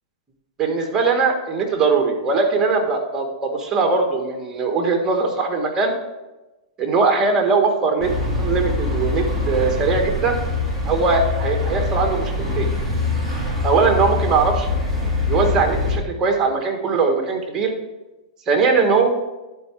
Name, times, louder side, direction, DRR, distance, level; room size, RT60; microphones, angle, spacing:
voice 1, 0.6-5.9 6.8-10.4 10.9-12.7 13.6-14.7 15.3-17.7 18.5-19.1, right 4 dB, 20° right, 3 dB, 1.6 m, -20 dB
sound 1, 8.0-16.0, left 3 dB, 5° right, 3.3 m, -23 dB
11.0 x 4.6 x 4.7 m, 1.1 s
hypercardioid pair, 130°, 3 cm